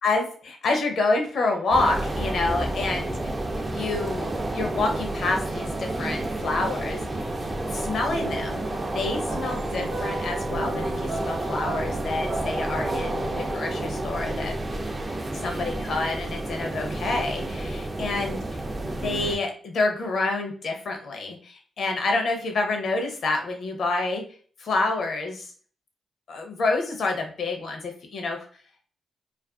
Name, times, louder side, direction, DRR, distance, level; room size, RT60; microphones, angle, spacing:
voice 1, 0.0-3.3 3.7-7.3 7.7-14.5 15.3-18.4 19.0-24.2 24.6-25.5 26.3-28.5, left 3 dB, 70° left, 3 dB, 0.6 m, -28 dB
sound 1, 1.7-19.4, right 1 dB, 30° right, 0.4 m, -30 dB
sound 2, 8.1-14.5, right 2 dB, 75° right, 0.6 m, -37 dB
2.5 x 2.3 x 2.3 m, 0.44 s
cardioid pair, 80°, 0 cm